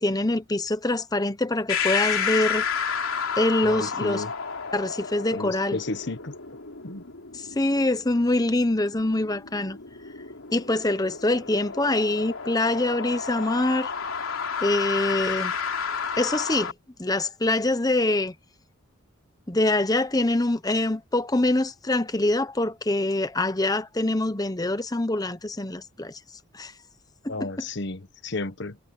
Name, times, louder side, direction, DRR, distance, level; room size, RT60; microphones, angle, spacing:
voice 1, 0.0-2.6 3.4-4.2 4.7-5.8 7.4-9.8 10.5-13.9 14.6-15.5 16.2-16.7 17.0-18.3 19.5-26.2 26.5-26.7 27.2-27.5, left 2 dB, 20° left, 0.9 m, -24 dB
sound 1, 1.7-16.7, left 6 dB, 85° left, 3.3 m, -31 dB
voice 2, 3.6-4.3 5.3-6.3 6.8-7.0 27.3-28.8, left 3 dB, 55° left, 1.1 m, -33 dB
head